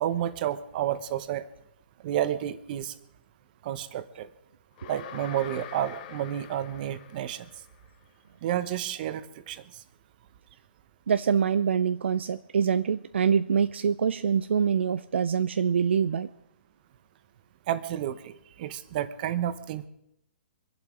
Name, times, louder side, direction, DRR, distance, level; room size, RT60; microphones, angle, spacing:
voice 1, 0.0-1.5 2.0-2.9 3.6-4.3 4.9-7.4 8.4-9.6 17.7-18.3 18.6-19.9, right 11 dB, 50° right, 12 dB, 1.3 m, -30 dB
sound 1, 4.8-7.9, left 9 dB, 45° left, 1.5 m, -44 dB
voice 2, 11.1-16.3, right 7 dB, 75° right, 12 dB, 0.6 m, -25 dB
24.0 x 11.5 x 4.8 m, 0.77 s
hypercardioid pair, 130°, 6 cm